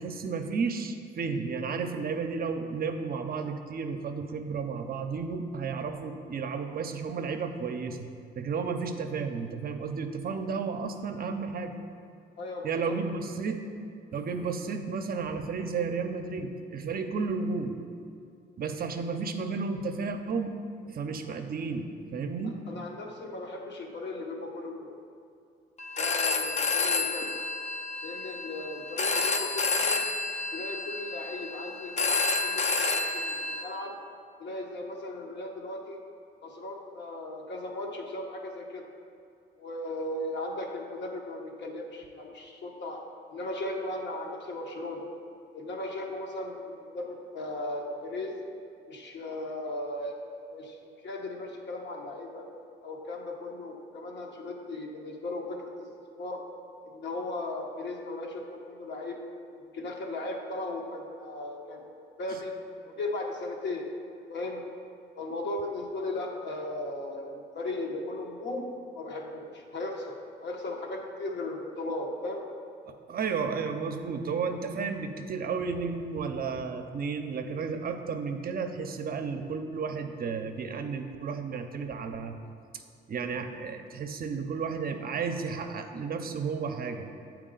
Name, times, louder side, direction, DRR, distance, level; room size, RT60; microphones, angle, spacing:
voice 1, 0.0-8.1 8.3-11.7 12.6-13.6 14.1-17.7 18.6-20.5 20.9-22.6 73.1-82.3 82.7-82.8 83.1-87.1, right 5 dB, 50° right, 6 dB, 0.6 m, -32 dB
voice 2, 12.4-12.9 22.4-25.0 26.0-27.3 28.0-30.1 30.5-33.9 34.4-36.0 36.4-38.8 39.6-43.0 43.3-45.0 45.5-48.4 48.9-50.2 50.5-52.4 52.8-55.9 56.1-56.4 56.8-59.2 59.6-62.5 62.9-63.9 64.3-64.6 65.2-72.4, left 2 dB, 60° left, 1 dB, 1.1 m, -37 dB
Telephone, 25.8-33.6, left 3 dB, 35° left, 0.6 m, -29 dB
8.1 x 4.6 x 3.8 m, 2.5 s
cardioid pair, 90°, 20 cm